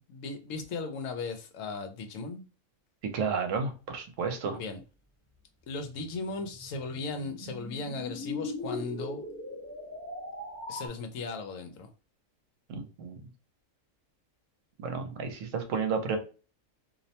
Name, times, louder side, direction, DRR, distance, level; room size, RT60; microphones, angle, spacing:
voice 1, 0.0-2.4 4.5-4.8 5.7-9.2 10.7-11.9, left 3 dB, 80° left, 1.0 m, -37 dB
voice 2, 3.1-4.6 12.7-13.2 14.8-16.2, right 5 dB, 75° right, 1.0 m, -32 dB
sound 1, 5.9-10.9, left 3 dB, 10° left, 0.8 m, -39 dB
2.6 x 2.1 x 2.7 m
omnidirectional pair, 1.4 m